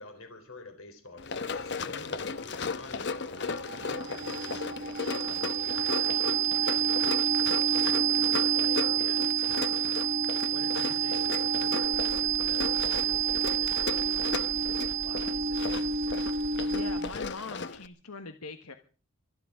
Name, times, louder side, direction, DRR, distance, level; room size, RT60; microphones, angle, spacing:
voice 1, 0.0-10.0 10.4-14.3 15.0-16.1, left 2 dB, 70° left, 3.9 m, -49 dB
Run, 1.2-17.9, left 4 dB, 50° left, 0.9 m, -36 dB
sound 1, 3.4-17.3, right 7 dB, 35° right, 1.0 m, -28 dB
sound 2, 11.8-17.3, equal, 5° right, 1.2 m, -45 dB
voice 2, 16.7-18.7, left 4 dB, 85° left, 1.4 m, -42 dB
24.5 x 11.0 x 4.9 m
head